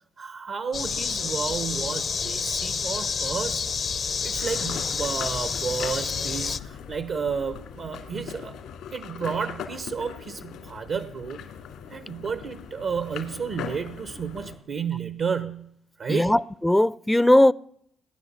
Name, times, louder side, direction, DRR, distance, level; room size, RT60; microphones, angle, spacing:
voice 1, 0.2-3.6 4.2-8.5 8.9-11.4 11.9-15.7 16.0-16.4, right 6 dB, 65° right, 1.0 m, -31 dB
sound 1, 0.7-6.6, left 5 dB, 55° left, 0.8 m, -29 dB
sound 2, 4.4-14.6, left 7 dB, 80° left, 2.3 m, -40 dB
voice 2, 16.1-17.5, left 1 dB, 10° left, 0.5 m, -19 dB
19.0 x 10.5 x 7.3 m
hypercardioid pair, 45°, 0 cm